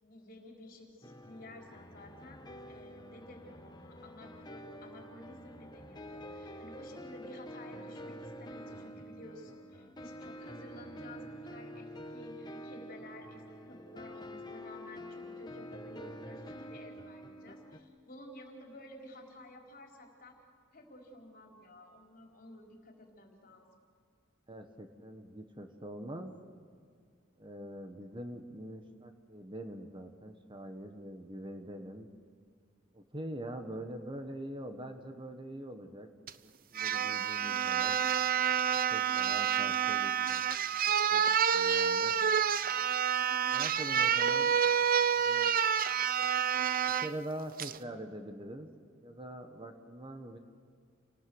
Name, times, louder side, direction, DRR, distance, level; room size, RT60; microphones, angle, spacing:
voice 1, 0.0-20.4 20.7-23.7, left 1 dB, 45° left, 1 dB, 4.3 m, -52 dB
sound 1, 1.0-17.8, equal, 20° left, 1.2 m, -47 dB
voice 2, 24.5-26.3 27.4-32.1 32.9-36.1 36.4-38.0 38.7-40.4 41.1-41.2 41.5-42.1 43.5-44.5 45.1-45.5 47.0-48.7 49.0-50.4, right 1 dB, 25° right, 6 dB, 1.4 m, -44 dB
sound 2, 36.3-36.4 36.7-47.1 47.6-47.8, right 8 dB, 45° right, 0.7 m, -28 dB
28.5 x 18.5 x 7.9 m, 2.2 s
head